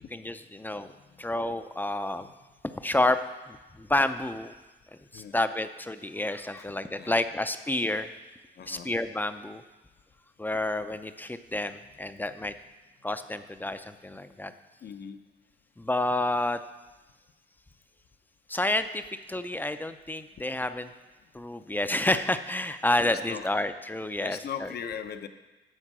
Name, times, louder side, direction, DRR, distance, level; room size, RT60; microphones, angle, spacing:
voice 1, 0.1-0.9 1.2-2.3 2.7-3.2 3.5-4.5 5.1-8.1 8.7-9.6 10.4-12.5 13.0-14.5 15.8-16.6 18.5-19.0 19.3-20.9 21.3-24.7, left 1 dB, 10° left, 10 dB, 0.6 m, -29 dB
voice 2, 6.6-7.2 8.6-8.9 12.4-12.5 14.8-15.2 23.0-23.5 24.2-25.3, left 8 dB, 55° left, 9 dB, 0.8 m, -40 dB
12.5 x 4.5 x 7.5 m, 1.1 s
cardioid pair, 90°, 20 cm